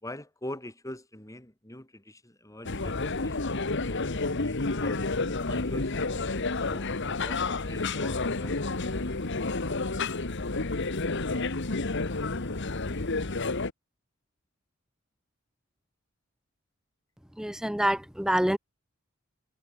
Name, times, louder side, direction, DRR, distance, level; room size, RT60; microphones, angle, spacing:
voice 1, 0.0-5.0 5.5-6.9 7.2-9.9, left 1 dB, 15° left, 3.0 m, -44 dB
sound 1, 2.6-13.7, left 3 dB, 60° left, 1.5 m, -30 dB
voice 2, 17.4-18.6, equal, 5° right, 0.6 m, -26 dB
head